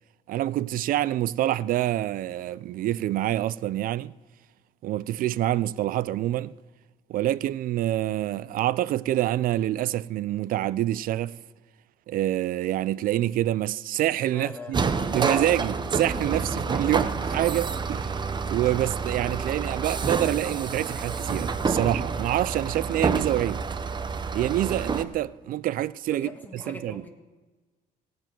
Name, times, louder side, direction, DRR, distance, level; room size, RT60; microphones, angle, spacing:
voice 1, 0.3-4.1 4.8-6.5 7.1-11.4 12.1-14.8 15.1-18.2 18.5-23.6 24.3-27.0, right 13 dB, 55° right, 0.4 m, -26 dB
voice 2, 14.3-14.8 26.1-27.1, left 2 dB, 10° left, 1.8 m, -41 dB
sound 1, 14.7-25.0, right 5 dB, 25° right, 0.7 m, -28 dB
17.0 x 9.3 x 4.5 m
cardioid pair, 110°, 17 cm